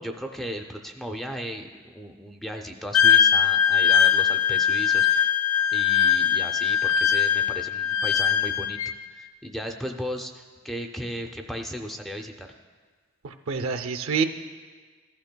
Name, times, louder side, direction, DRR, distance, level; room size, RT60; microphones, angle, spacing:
voice 1, 0.0-5.4 5.7-8.8 9.1-12.5, equal, ahead, 3 dB, 0.4 m, -36 dB
Wind instrument woodwind instrument, 2.9-8.9, left 8 dB, 80° left, 0.4 m, -21 dB
voice 2, 13.2-14.2, right 5 dB, 65° right, 7 dB, 0.5 m, -27 dB
15.0 x 12.0 x 2.2 m, 1.5 s
head